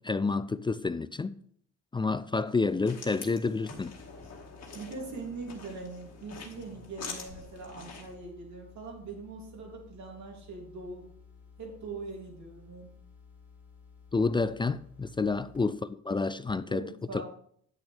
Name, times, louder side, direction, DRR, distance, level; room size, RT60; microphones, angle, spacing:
voice 1, 0.0-1.4 1.9-3.9 14.1-17.2, left 4 dB, 15° left, 0.3 m, -29 dB
sound 1, 2.5-8.1, left 4 dB, 55° left, 2.2 m, -46 dB
sound 2, 3.7-15.6, left 6 dB, 5° right, 3.0 m, -55 dB
voice 2, 4.7-11.1 11.6-12.9 15.2-15.3 16.6-17.2, right 3 dB, 65° right, 3.1 m, -42 dB
8.8 x 8.8 x 3.5 m
cardioid pair, 90°, 30 cm